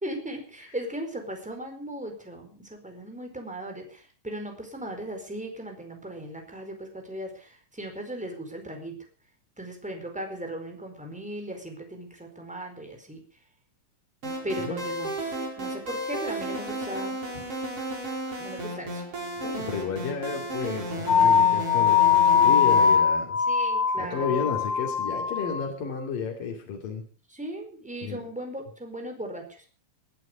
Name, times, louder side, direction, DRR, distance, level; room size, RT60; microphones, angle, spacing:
voice 1, 0.0-9.0 9.6-13.2 14.4-15.1 15.6-17.2 18.4-19.0 23.5-24.5 27.3-29.7, right 1 dB, ahead, 4 dB, 4.3 m, -37 dB
sound 1, 14.2-23.0, right 1 dB, 45° right, 6.3 m, -33 dB
voice 2, 19.4-23.4 24.0-27.0 28.0-28.2, left 6 dB, 75° left, 1 dB, 4.5 m, -32 dB
sound 2, 21.1-25.7, left 7 dB, 55° left, 2.2 m, -21 dB
21.5 x 12.0 x 5.2 m, 0.38 s
omnidirectional pair, 3.9 m